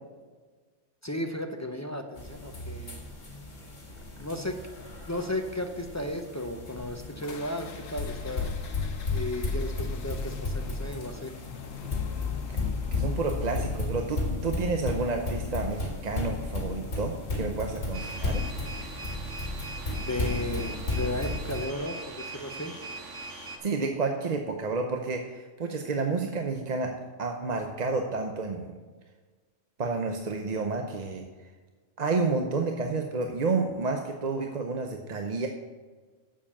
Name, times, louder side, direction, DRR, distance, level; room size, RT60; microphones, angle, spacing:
voice 1, 1.0-3.0 4.2-4.6 5.1-8.5 9.1-11.3 20.0-22.7, left 1 dB, 25° left, 4 dB, 0.4 m, -34 dB
sound 1, 2.2-21.7, left 3 dB, 60° left, 2.1 m, -34 dB
sound 2, 7.2-17.4, left 7 dB, 80° left, 1.3 m, -45 dB
voice 2, 12.9-18.4 23.6-28.8 29.8-31.2 32.0-35.5, right 4 dB, 40° right, 3 dB, 0.7 m, -30 dB
sound 3, 17.9-23.6, right 3 dB, 65° right, 1.7 m, -41 dB
7.3 x 7.3 x 7.1 m, 1.4 s
omnidirectional pair, 1.3 m